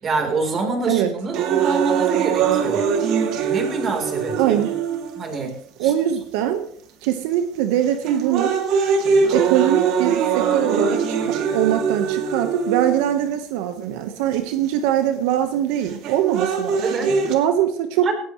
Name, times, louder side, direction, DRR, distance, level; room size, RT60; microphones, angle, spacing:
voice 1, 0.0-2.8 3.4-4.5 5.2-5.9 16.8-17.1 18.0-18.1, right 4 dB, 30° right, 4 dB, 4.0 m, -26 dB
sound 1, 1.3-5.4 6.1-6.2 7.0-7.3 7.8-13.3 14.3-14.4 15.8-17.3, right 6 dB, 60° right, 2.7 m, -22 dB
voice 2, 4.4-4.8 5.4-5.5 5.8-6.7 7.0-8.5 9.3-18.1, right 11 dB, 80° right, 7 dB, 1.4 m, -22 dB
17.5 x 17.0 x 3.3 m, 0.62 s
cardioid pair, 130°, 0 cm